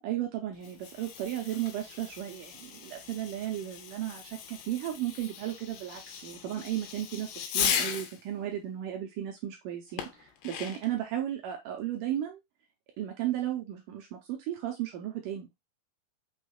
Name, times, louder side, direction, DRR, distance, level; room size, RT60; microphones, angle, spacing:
voice 1, 0.0-12.4 13.0-15.5, right 12 dB, 80° right, 3 dB, 1.9 m, -35 dB
Fireworks, 0.5-8.2 10.0-11.0, left 8 dB, 80° left, 2.3 m, -37 dB
6.2 x 3.3 x 2.2 m, 0.19 s
omnidirectional pair, 4.3 m